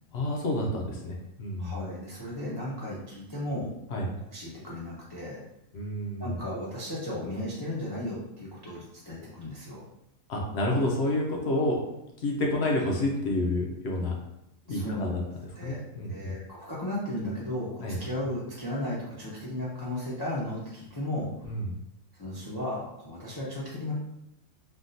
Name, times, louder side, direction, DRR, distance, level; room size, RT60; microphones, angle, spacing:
voice 1, 0.1-1.8 3.9-4.1 5.7-6.4 10.3-11.8 12.2-14.2 14.7-15.2 15.6-16.3 17.8-18.0 21.4-21.7, left 1 dB, 60° left, -1 dB, 0.8 m, -29 dB
voice 2, 1.6-3.7 4.3-5.4 6.2-9.8 14.7-15.8 16.1-21.5 22.2-23.9, left 1 dB, 30° left, -8 dB, 0.4 m, -35 dB
3.6 x 2.3 x 2.6 m, 0.85 s
omnidirectional pair, 1.4 m